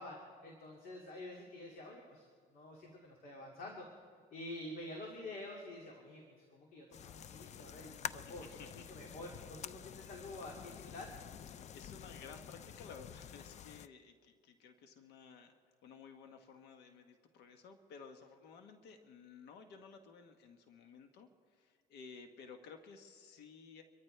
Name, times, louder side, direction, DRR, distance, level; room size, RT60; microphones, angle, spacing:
voice 1, 0.0-3.9 4.3-8.5 8.7-11.1, left 1 dB, 60° left, -1 dB, 2.4 m, -48 dB
sound 1, 6.9-13.9, left 9 dB, 45° left, 0.4 m, -49 dB
voice 2, 8.2-8.8 11.5-23.8, left 5 dB, 80° left, 6 dB, 1.2 m, -55 dB
26.0 x 14.0 x 3.3 m, 2.1 s
cardioid pair, 110°, 17 cm